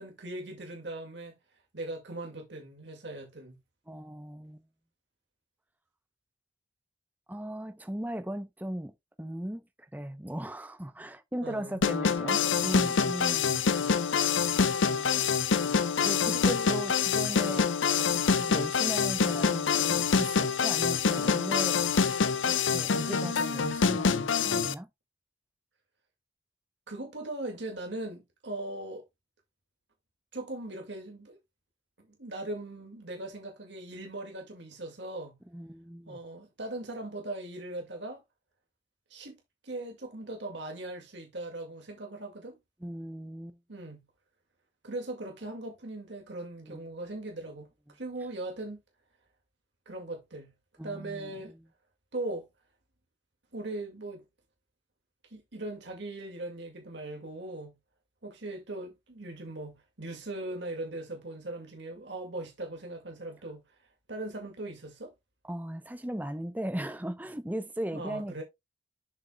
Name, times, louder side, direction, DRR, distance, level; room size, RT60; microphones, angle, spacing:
voice 1, 0.0-1.4 1.7-3.6 11.4-11.8 12.2-12.6 16.3-16.7 26.9-29.0 30.3-31.4 32.0-35.4 36.1-38.2 39.1-39.4 39.6-42.6 43.7-44.0 44.8-48.8 49.9-50.5 50.8-51.5 52.1-52.5 53.5-54.2 55.3-57.8 58.2-63.6 64.1-65.1 67.9-68.4, right 2 dB, 65° right, 2.1 m, -39 dB
voice 2, 3.9-4.6 7.3-13.6 14.5-15.5 16.0-17.7 17.9-21.8 22.4-24.9 35.5-36.2 42.8-43.6 46.6-46.8 50.8-51.3 65.4-68.4, right 1 dB, 10° right, 0.6 m, -38 dB
sound 1, 11.8-24.7, left 6 dB, 75° left, 0.6 m, -26 dB
7.8 x 6.9 x 2.3 m
head